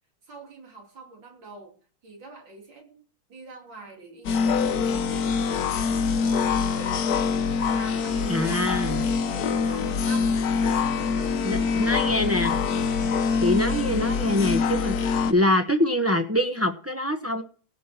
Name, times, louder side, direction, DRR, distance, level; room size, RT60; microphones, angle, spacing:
voice 1, 0.2-1.8 2.0-3.0 3.3-5.4 5.6-7.1 7.4-10.4 10.7-12.5, right 3 dB, 65° right, 2 dB, 3.8 m, -44 dB
sound 1, 4.2-15.3, left 5 dB, 60° left, 1.2 m, -24 dB
voice 2, 8.2-9.0 11.4-12.5 13.4-17.4, left 1 dB, 20° right, 7 dB, 0.4 m, -24 dB
17.0 x 6.3 x 4.4 m, 0.40 s
omnidirectional pair, 2.2 m